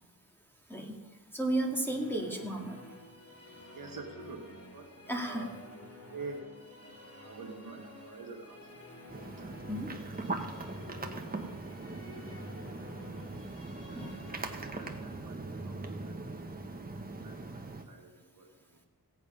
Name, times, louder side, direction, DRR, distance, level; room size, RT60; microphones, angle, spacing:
voice 1, 1.3-2.8 5.1-5.5 9.7-9.9 13.9-14.2, right 1 dB, 5° left, 0 dB, 2.0 m, -33 dB
Musical instrument, 1.5-16.9, left 2 dB, 40° left, 2.5 m, -51 dB
voice 2, 3.7-5.5 6.1-6.4 6.8-10.2 10.9-11.3 11.6-12.9 13.9-16.4 16.7-18.8, right 3 dB, 60° right, 1 dB, 2.0 m, -49 dB
sound 1, 9.1-17.8, right 2 dB, 25° right, 1.2 m, -40 dB
17.0 x 8.1 x 5.4 m, 1.2 s
wide cardioid pair, 95°, 37 cm